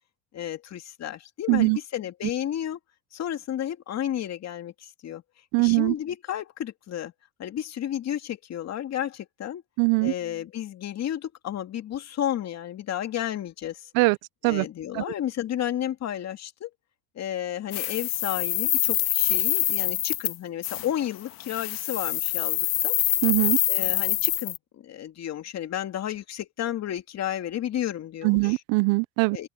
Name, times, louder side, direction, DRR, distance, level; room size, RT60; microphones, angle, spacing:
voice 1, 0.3-2.8 3.1-5.2 5.6-7.1 7.4-9.6 10.0-13.9 14.4-16.7 17.2-23.0 23.7-28.6 29.3-29.5, left 11 dB, 40° left, 2.4 m, -32 dB
voice 2, 5.5-5.9 9.8-10.1 14.0-14.2 14.4-14.6 14.9-15.0 23.2-23.6 28.2-29.4, right 29 dB, 60° right, 0.6 m, -21 dB
sound 1, 17.7-20.4 20.6-20.9 21.4-24.6, left 16 dB, 55° left, 2.7 m, -25 dB
open air
supercardioid pair, 110°, 40 cm